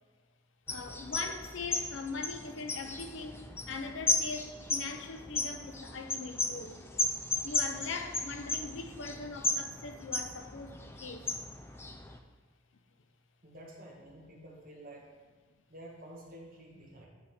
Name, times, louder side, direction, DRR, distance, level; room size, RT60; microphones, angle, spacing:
voice 1, 0.7-3.4 3.7-6.8 7.4-11.3, left 4 dB, 70° left, 7 dB, 0.6 m, -41 dB
sound 1, 0.7-12.2, left 2 dB, 10° left, 0.3 m, -35 dB
voice 2, 13.4-15.1 15.7-17.1, right 1 dB, 45° right, -2 dB, 1.4 m, -50 dB
9.7 x 3.3 x 4.2 m, 1.4 s
head